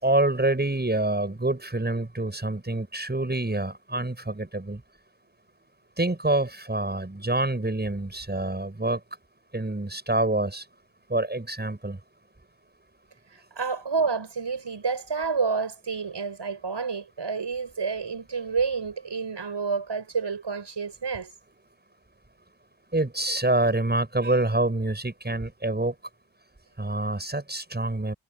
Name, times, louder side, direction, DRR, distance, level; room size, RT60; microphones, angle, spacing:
voice 1, 0.0-4.8 6.0-9.0 9.5-10.7 11.1-12.0 22.9-25.9 26.8-28.1, right 2 dB, 20° right, 7.2 m, -26 dB
voice 2, 13.3-21.3, right 5 dB, 65° right, 7.5 m, -29 dB
wide cardioid pair, 95°, 45 cm